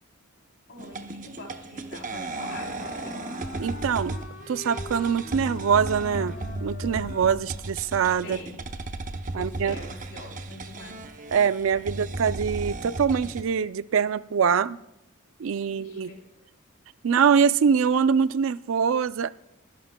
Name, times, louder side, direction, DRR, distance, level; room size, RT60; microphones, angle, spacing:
voice 1, 0.7-3.2 8.2-8.6 9.3-11.1 15.7-16.4, left 1 dB, 65° left, 3.4 m, -44 dB
sound 1, 0.8-13.4, right 2 dB, 40° right, 0.7 m, -35 dB
Wind instrument woodwind instrument, 2.2-7.7, left 3 dB, 50° left, 2.1 m, -42 dB
voice 2, 3.6-4.2 4.5-8.4 9.3-9.8 11.3-14.8 15.4-16.1 17.0-19.3, right 6 dB, 70° right, 0.4 m, -24 dB
23.5 x 11.5 x 2.2 m
head